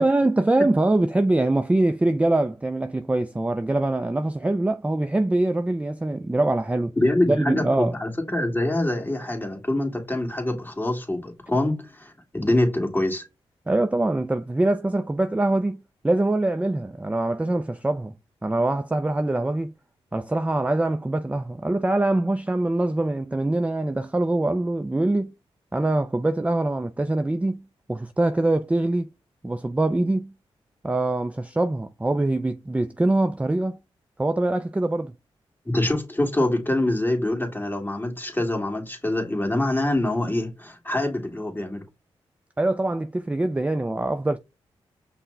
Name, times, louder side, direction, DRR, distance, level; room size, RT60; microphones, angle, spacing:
voice 1, 0.0-7.0 7.3-7.9 13.7-18.1 18.4-19.7 20.1-25.3 25.7-29.1 29.4-30.3 30.8-33.8 34.2-35.1 42.6-44.4, right 2 dB, 10° right, 0.3 m, -23 dB
voice 2, 7.0-13.2 35.7-41.8, left 1 dB, 20° left, 1.9 m, -25 dB
5.6 x 2.1 x 3.7 m
supercardioid pair, 45°, 11 cm